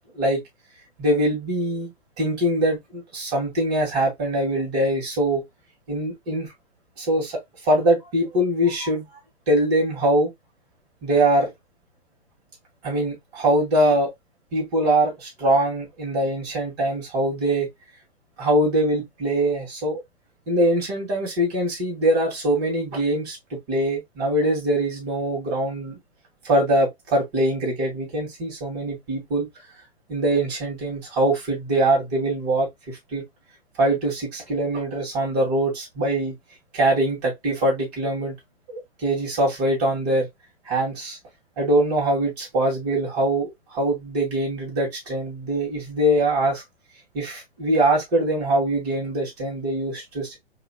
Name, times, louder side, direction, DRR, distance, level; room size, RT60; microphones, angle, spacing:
voice 1, 1.0-5.4 5.9-6.5 7.0-9.1 9.5-10.3 11.0-11.5 12.8-14.1 14.5-17.7 18.4-20.0 20.5-25.9 26.4-29.5 30.1-33.2 33.8-36.3 36.7-38.4 38.7-40.3 40.7-41.2 41.6-46.6 47.1-50.4, right 1 dB, 40° right, 2.6 m, -23 dB
4.7 x 2.9 x 2.3 m
figure-of-eight pair, 115°, 31 cm